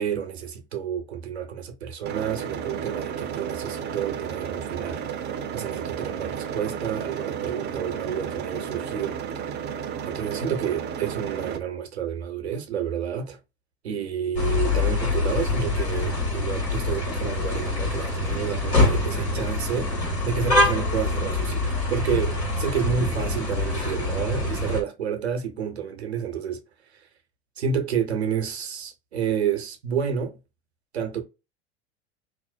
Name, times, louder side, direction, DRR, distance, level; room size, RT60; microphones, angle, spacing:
voice 1, 0.0-9.5 10.0-13.4 13.8-26.6 26.9-27.1 27.6-30.4 30.9-31.2, right 7 dB, 80° right, 0.7 m, -30 dB
sound 1, 2.1-11.6, right 8 dB, 30° right, 0.5 m, -32 dB
sound 2, 14.4-24.8, left 2 dB, 80° left, 1.3 m, -25 dB
2.4 x 2.1 x 2.5 m
figure-of-eight pair, 75°, 32 cm